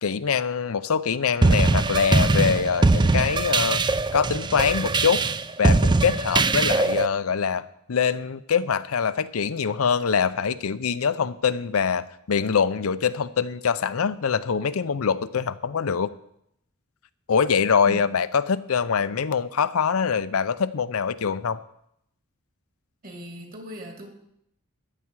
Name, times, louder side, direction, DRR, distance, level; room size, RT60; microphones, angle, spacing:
voice 1, 0.0-3.8 4.1-5.2 5.6-16.1 17.3-21.6, left 6 dB, 80° left, 14 dB, 0.6 m, -24 dB
sound 1, 1.4-7.1, right 3 dB, 20° right, 0.4 m, -21 dB
voice 2, 23.0-24.1, equal, 45° right, 3 dB, 2.5 m, -38 dB
14.0 x 9.9 x 4.7 m, 0.75 s
head